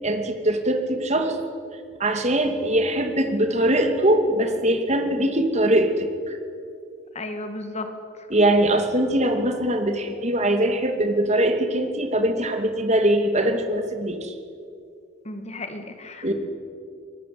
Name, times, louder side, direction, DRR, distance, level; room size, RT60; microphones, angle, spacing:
voice 1, 0.0-1.4 2.0-6.4 8.3-14.3 16.2-16.3, right 1 dB, 35° right, 6 dB, 2.7 m, -22 dB
voice 2, 7.2-7.9 15.3-16.3, left 2 dB, 35° left, 7 dB, 2.0 m, -34 dB
24.0 x 21.0 x 9.5 m, 2.3 s
head